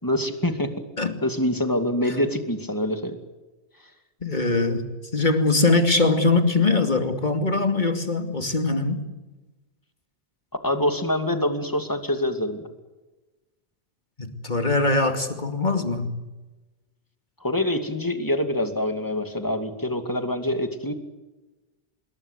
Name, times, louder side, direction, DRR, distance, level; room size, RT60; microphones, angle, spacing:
voice 1, 0.0-0.8 1.2-3.2 10.6-12.6 17.4-20.9, left 1 dB, 20° left, 7 dB, 2.5 m, -25 dB
voice 2, 4.2-4.9 5.1-9.0 14.2-16.2, left 3 dB, 45° left, 6 dB, 2.7 m, -22 dB
26.5 x 22.0 x 8.2 m, 1.1 s
omnidirectional pair, 1.1 m